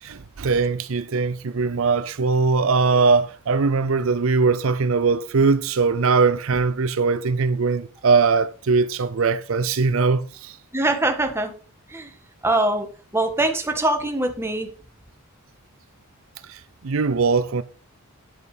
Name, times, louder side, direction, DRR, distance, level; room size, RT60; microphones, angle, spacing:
voice 1, 0.0-10.6 16.5-17.6, right 4 dB, 65° right, 0.5 m, -21 dB
voice 2, 10.7-11.5 11.9-12.1 12.4-12.9 13.1-14.7, right 2 dB, 10° right, 1.5 m, -23 dB
10.5 x 6.9 x 5.1 m
head